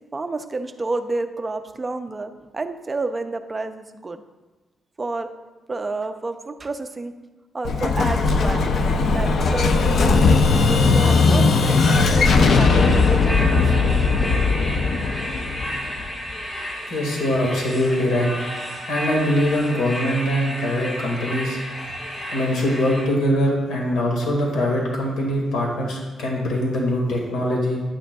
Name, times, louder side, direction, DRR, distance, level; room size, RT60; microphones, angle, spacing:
voice 1, 0.1-4.2 5.0-5.3 5.7-7.1 7.5-8.8 9.1-13.8 14.2-14.4, right 3 dB, 20° right, 8 dB, 0.4 m, -30 dB
Explosion, 7.7-16.3, left 4 dB, 50° left, 0.5 m, -18 dB
sound 1, 12.2-23.1, equal, 30° left, 1.8 m, -32 dB
voice 2, 16.9-27.8, equal, 85° left, -1 dB, 1.9 m, -23 dB
10.0 x 9.0 x 2.3 m, 1.2 s
wide cardioid pair, 180°, 0 cm